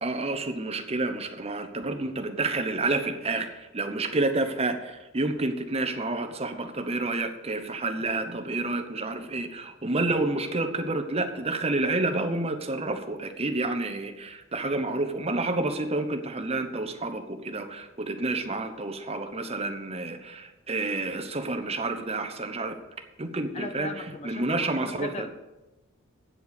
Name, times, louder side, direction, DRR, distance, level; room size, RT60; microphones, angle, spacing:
voice 1, 0.0-22.7 23.2-23.9 24.2-25.3, right 2 dB, 30° right, 7 dB, 1.0 m, -29 dB
voice 2, 23.5-25.3, left 3 dB, 30° left, 10 dB, 0.7 m, -38 dB
8.8 x 7.8 x 8.2 m, 1.1 s
head